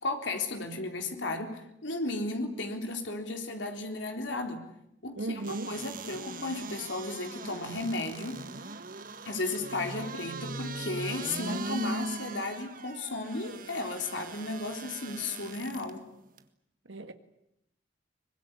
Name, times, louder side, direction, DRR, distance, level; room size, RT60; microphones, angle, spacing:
voice 1, 0.0-4.7 5.0-8.4 9.3-16.0, left 2 dB, 75° left, 3.8 m, -34 dB
voice 2, 5.2-5.7 16.9-17.1, right 2 dB, 85° right, 1.7 m, -36 dB
sound 1, 5.4-15.9 16.4-16.5, right 3 dB, 45° right, 1.7 m, -40 dB
23.5 x 21.0 x 9.9 m
head